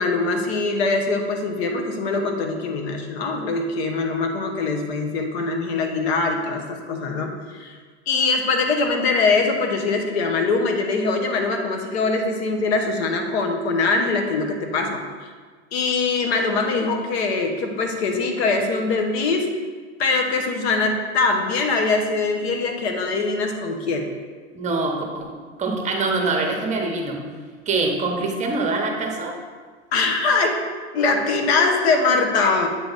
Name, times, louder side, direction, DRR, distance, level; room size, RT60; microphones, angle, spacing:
voice 1, 0.0-7.8 8.1-15.3 15.7-19.5 20.0-24.1 29.9-30.6 30.9-32.7, left 3 dB, 65° left, 3 dB, 1.1 m, -22 dB
voice 2, 24.5-25.3 25.6-27.2 27.7-29.4, right 3 dB, 20° right, 2 dB, 1.0 m, -24 dB
8.0 x 3.3 x 4.0 m, 1.5 s
hypercardioid pair, 120°, 34 cm